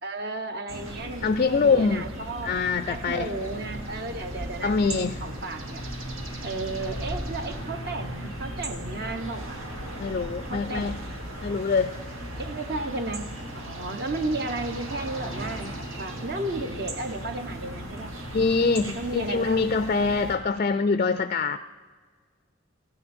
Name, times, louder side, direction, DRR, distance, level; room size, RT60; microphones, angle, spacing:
voice 1, 0.0-2.5 2.9-5.9 6.4-9.6 10.5-11.2 12.4-13.3 13.5-18.1 18.8-19.6 20.1-20.3, right 2 dB, 50° right, 7 dB, 1.1 m, -34 dB
sound 1, 0.7-20.4, right 1 dB, 80° right, 2.2 m, -36 dB
voice 2, 1.2-2.0 2.4-3.3 4.6-5.2 10.0-11.0 11.4-11.9 18.3-21.6, left 4 dB, 40° left, 12 dB, 0.4 m, -24 dB
17.0 x 15.5 x 4.4 m, 1.5 s
head